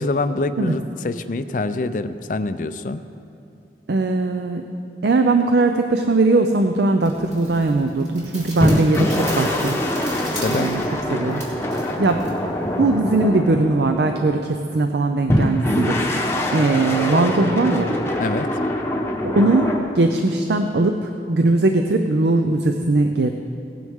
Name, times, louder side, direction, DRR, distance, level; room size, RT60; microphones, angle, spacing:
voice 1, 0.0-3.0 10.3-10.7 18.2-18.5, left 2 dB, 45° left, 11 dB, 0.4 m, -25 dB
voice 2, 3.9-4.7 5.0-9.8 10.5-10.8 11.1-11.4 12.0-12.3 12.8-18.0 19.2-23.3, right 2 dB, 70° right, 6 dB, 0.5 m, -20 dB
sound 1, 7.0-13.0, right 1 dB, 40° right, 2.4 m, -38 dB
sound 2, 8.6-14.5 15.3-19.8, left 1 dB, 15° left, 0.9 m, -24 dB
17.5 x 9.3 x 3.6 m, 2.6 s
head